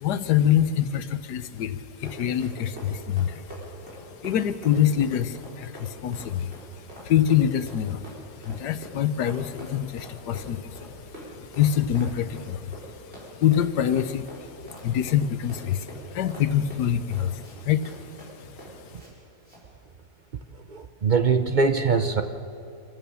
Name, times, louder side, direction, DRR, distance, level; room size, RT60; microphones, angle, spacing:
voice 1, 0.0-3.4 4.2-8.0 8.4-12.8 13.3-18.0 18.4-18.5, left 10 dB, 80° left, 13 dB, 1.4 m, -25 dB
Run, 1.7-19.1 19.4-19.6, equal, 40° right, 5.6 m, -44 dB
voice 2, 20.7-22.2, right 5 dB, 55° right, 8 dB, 0.5 m, -22 dB
26.5 x 15.0 x 7.0 m, 2.6 s
omnidirectional pair, 1.8 m